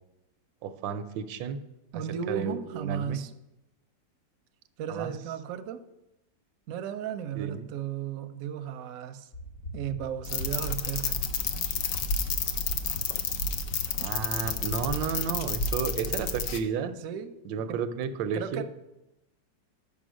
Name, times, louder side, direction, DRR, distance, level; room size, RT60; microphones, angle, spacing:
voice 1, 0.6-1.6 1.9-3.2 4.9-5.1 7.3-7.7 14.0-16.9 17.4-18.6, right 6 dB, 90° right, 11 dB, 1.3 m, -32 dB
voice 2, 1.9-3.3 4.8-5.8 6.7-9.3 9.7-11.3 14.0-14.1 16.9-17.3 17.7-17.8 18.3-18.6, right 9 dB, 70° right, 9 dB, 0.8 m, -35 dB
sound 1, 9.3-16.4, left 1 dB, 45° left, 1.5 m, -42 dB
sound 2, 10.2-16.6, left 5 dB, 65° left, 0.8 m, -30 dB
6.2 x 5.4 x 6.2 m, 0.92 s
omnidirectional pair, 1.9 m